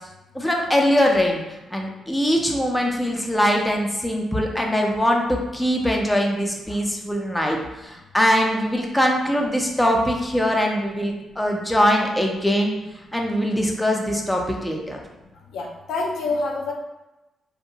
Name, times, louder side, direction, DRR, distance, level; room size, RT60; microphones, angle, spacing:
voice 1, 0.3-1.4 1.7-7.6 7.8-12.7 13.1-15.0, equal, 5° left, 0 dB, 0.5 m, -22 dB
voice 2, 15.5-16.7, left 3 dB, 80° left, -1 dB, 0.4 m, -27 dB
2.6 x 2.2 x 2.7 m, 1.0 s
supercardioid pair, 55°, 0 cm